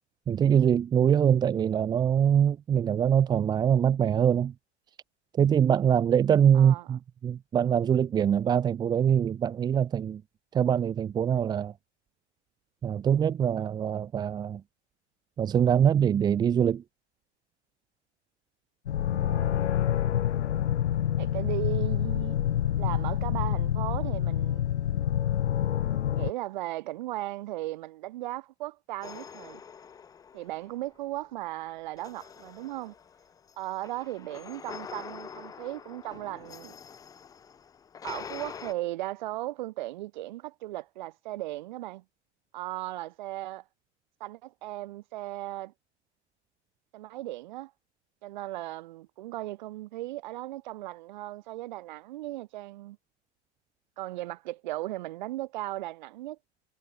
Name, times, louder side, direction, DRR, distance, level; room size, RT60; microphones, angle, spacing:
voice 1, 0.3-4.5 5.3-10.2 10.5-11.7 12.8-14.6 15.4-16.8, right 8 dB, 10° right, 3.4 m, -23 dB
voice 2, 6.5-6.8 19.1-19.6 21.2-22.4 22.8-24.6 26.2-29.6 30.3-32.9 33.6-36.8 38.0-42.0 42.5-43.6 44.2-45.7 46.9-47.7 48.2-53.0 54.0-56.4, right 17 dB, 40° right, 6.0 m, -37 dB
sound 1, 18.9-26.3, left 11 dB, 70° left, 3.0 m, -27 dB
sound 2, 29.0-31.0 31.9-38.7, left 7 dB, 10° left, 4.3 m, -45 dB
supercardioid pair, 175°, 35 cm